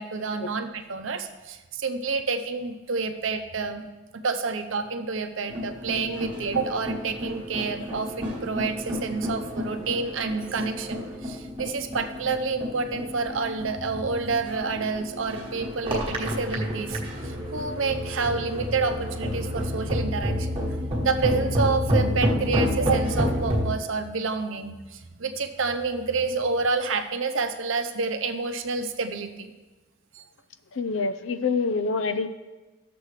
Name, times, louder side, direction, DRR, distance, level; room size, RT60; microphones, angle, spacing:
voice 1, 0.0-20.6 21.0-29.5 30.1-30.2, right 4 dB, 80° right, 7 dB, 0.7 m, -29 dB
sound 1, 5.5-23.8, equal, 25° right, 1.3 m, -30 dB
voice 2, 30.8-32.3, left 4 dB, 75° left, 12 dB, 0.5 m, -26 dB
13.0 x 6.9 x 3.2 m, 1.2 s
head